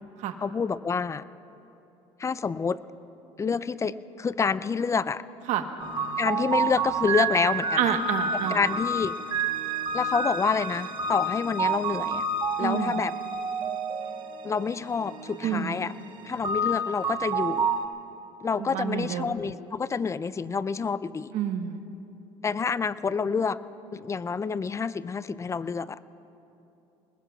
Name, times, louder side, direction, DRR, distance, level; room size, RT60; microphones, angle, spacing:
voice 1, 0.4-1.2 2.2-2.8 3.4-5.2 6.2-8.0 8.5-9.2 9.9-12.2 12.6-13.1 14.4-15.9 16.2-17.7 18.4-21.3 22.4-23.6 23.9-26.0, left 5 dB, 20° left, 17 dB, 0.4 m, -28 dB
sound 1, 5.8-17.9, right 3 dB, 40° right, 1.5 m, -29 dB
voice 2, 7.8-8.6 12.6-13.0 15.4-15.7 18.6-19.4 21.3-21.8, right 9 dB, 65° right, 7 dB, 1.2 m, -28 dB
26.5 x 20.5 x 2.4 m, 2.9 s
supercardioid pair, 85°, 13 cm